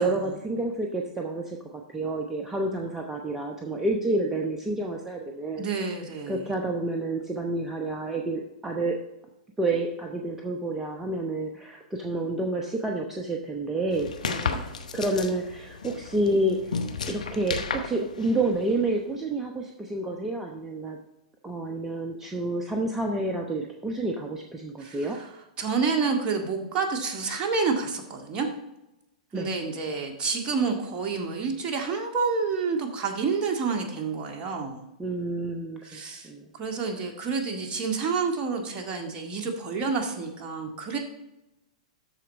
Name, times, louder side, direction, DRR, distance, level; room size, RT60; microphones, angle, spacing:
voice 1, 0.0-5.7 6.3-9.0 9.6-14.1 14.9-16.8 17.1-21.0 21.4-25.2 29.3-29.5 35.0-36.5, right 2 dB, 10° right, 1 dB, 0.9 m, -29 dB
voice 2, 5.6-6.4 14.2-14.7 24.8-25.3 25.6-28.5 29.3-34.8 35.8-41.0, right 5 dB, 30° right, 2 dB, 1.8 m, -29 dB
sound 1, 13.9-18.9, left 5 dB, 80° left, 0.9 m, -34 dB
13.5 x 4.5 x 4.2 m, 0.91 s
hypercardioid pair, 105°, 4 cm